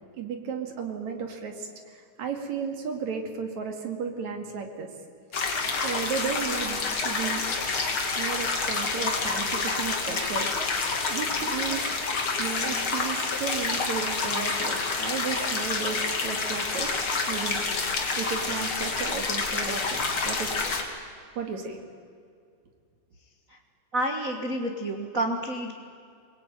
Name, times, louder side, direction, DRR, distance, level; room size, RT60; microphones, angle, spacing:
voice 1, 0.1-4.9 5.7-7.4 8.2-10.5 11.1-17.6 18.2-20.6 21.4-21.8, right 6 dB, 50° right, 4 dB, 3.3 m, -34 dB
sound 1, 5.3-20.8, left 4 dB, 40° left, 2.7 m, -28 dB
voice 2, 23.9-25.7, right 1 dB, 85° right, 3 dB, 0.7 m, -29 dB
22.5 x 21.5 x 9.2 m, 2.2 s
omnidirectional pair, 4.4 m